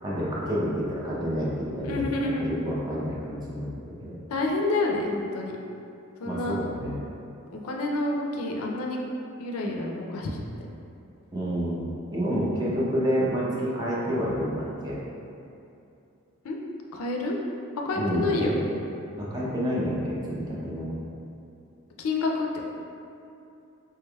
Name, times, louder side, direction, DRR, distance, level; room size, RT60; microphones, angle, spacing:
voice 1, 0.0-4.2 6.3-7.0 11.3-11.8 12.1-15.0 18.0-18.6 19.2-20.9, equal, 20° right, -6 dB, 0.5 m, -29 dB
voice 2, 1.8-2.5 4.3-5.6 6.2-6.6 7.5-9.0 9.4-10.4 16.4-16.6 16.9-17.4 17.8-18.5 22.0-22.6, left 2 dB, 80° left, 0 dB, 0.4 m, -28 dB
3.3 x 3.2 x 2.2 m, 2.7 s
head